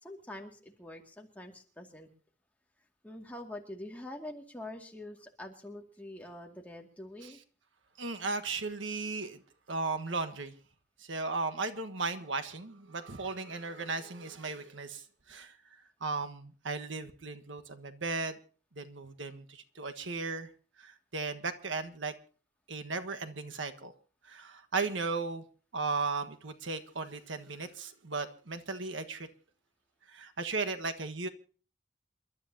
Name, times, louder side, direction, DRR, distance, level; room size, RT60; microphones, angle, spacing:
voice 1, 0.0-2.1 3.0-7.4, left 1 dB, 10° left, 2.2 m, -45 dB
voice 2, 8.0-9.4 9.7-10.5 11.0-15.5 16.0-18.4 18.7-20.5 20.8-22.1 22.7-23.9 24.2-25.4 25.7-29.3 30.1-31.3, right 3 dB, 85° right, 1.5 m, -36 dB
28.0 x 12.5 x 2.8 m
head